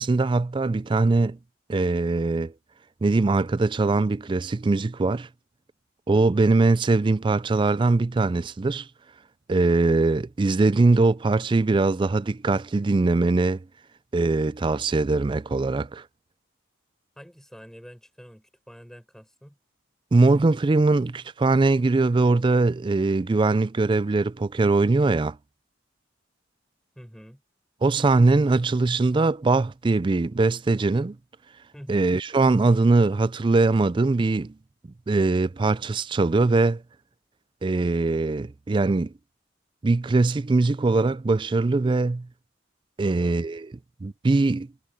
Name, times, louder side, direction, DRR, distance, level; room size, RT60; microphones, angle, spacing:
voice 1, 0.0-1.4 1.7-2.5 3.0-5.3 6.1-8.9 9.5-13.6 14.1-16.0 20.1-25.4 27.8-31.2 31.9-34.5 35.1-36.8 37.6-39.1 39.8-42.3 43.0-43.7 44.0-44.7, right 3 dB, 25° right, 0.3 m, -21 dB
voice 2, 17.2-19.6 26.9-27.4 31.7-32.1 43.0-43.5, equal, ahead, 6.5 m, -46 dB
head